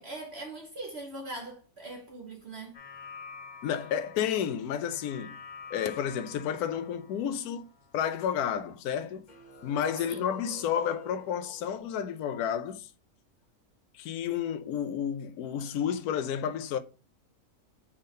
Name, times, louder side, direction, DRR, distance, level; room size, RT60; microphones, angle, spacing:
voice 1, 0.0-2.8 10.1-10.3, right 2 dB, 45° right, 1.2 m, -41 dB
sound 1, 2.7-9.0 9.3-11.8, left 3 dB, 35° left, 1.0 m, -49 dB
voice 2, 3.6-5.4 5.7-7.7 7.9-9.3 9.6-12.9 13.9-16.8, left 8 dB, 80° left, 1.1 m, -31 dB
5.5 x 3.7 x 5.3 m
omnidirectional pair, 1.6 m